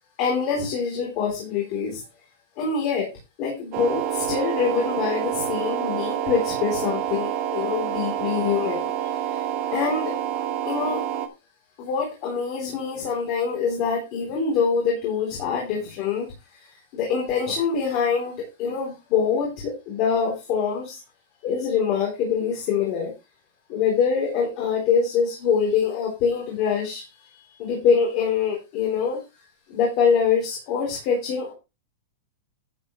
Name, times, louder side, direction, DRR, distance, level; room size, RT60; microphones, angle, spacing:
voice 1, 0.2-2.0 2.6-3.1 3.4-9.4 9.7-10.2 10.6-11.0 11.8-16.3 16.6-21.0 21.4-23.1 23.7-29.2 29.7-31.5, left 6 dB, 30° left, -1 dB, 3.6 m, -25 dB
sound 1, 3.7-11.3, right 10 dB, 30° right, 1.2 m, -27 dB
11.5 x 8.5 x 3.2 m, 0.27 s
supercardioid pair, 180°, 0 cm